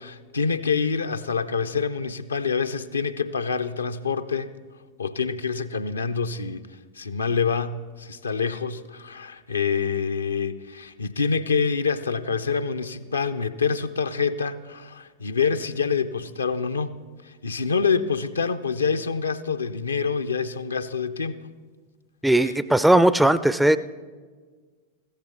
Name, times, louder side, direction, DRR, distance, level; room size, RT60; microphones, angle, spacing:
voice 1, 0.0-4.5 5.0-6.6 7.0-16.9 17.2-21.4 22.3-22.5, left 5 dB, 75° left, 0.5 m, -26 dB
voice 2, 22.2-23.8, right 1 dB, 5° right, 0.4 m, -18 dB
15.0 x 14.0 x 3.6 m
figure-of-eight pair, 90°, 0 cm